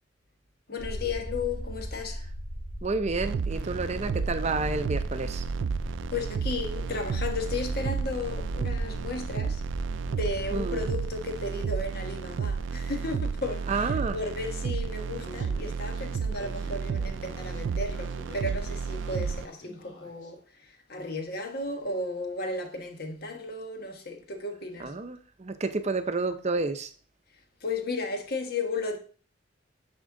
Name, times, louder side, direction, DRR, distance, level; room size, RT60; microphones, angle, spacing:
voice 1, 0.7-2.3 6.1-9.6 10.1-24.9 27.6-29.0, left 3 dB, 55° left, 1.2 m, -34 dB
sound 1, 0.8-11.1, equal, 35° left, 2.7 m, -38 dB
voice 2, 2.8-5.5 10.5-10.9 13.7-14.2 24.8-26.9, right 3 dB, 35° right, 0.6 m, -30 dB
sound 2, 3.2-19.5, right 5 dB, 75° right, 0.3 m, -32 dB
Speech, 15.1-20.3, left 1 dB, 75° left, 2.3 m, -49 dB
10.0 x 4.4 x 3.8 m
head